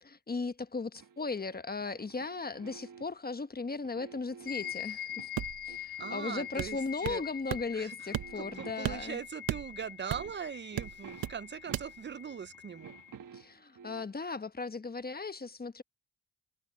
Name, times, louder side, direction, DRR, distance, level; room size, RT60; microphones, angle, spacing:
voice 1, 0.0-5.3 5.6-9.2 13.3-15.8, left 4 dB, 25° left, 1.1 m, -37 dB
sound 1, 1.0-3.3 3.8-5.4 5.7-7.2 7.5-7.7 8.1-9.3 9.8-9.9 10.1-12.2 12.5-14.2, right 7 dB, 65° right, 1.4 m, -52 dB
sound 2, 4.5-13.2, left 11 dB, 85° left, 1.5 m, -44 dB
sound 3, 5.4-5.8 6.6-7.2 7.5-7.7 8.1-8.5 8.8-10.4 10.8-11.4 11.7-11.9, right 12 dB, 80° right, 0.9 m, -36 dB
voice 2, 6.0-6.8 7.0-7.2 7.7-8.1 8.3-12.9, right 7 dB, 30° right, 0.5 m, -41 dB
cardioid pair, 75°, 35 cm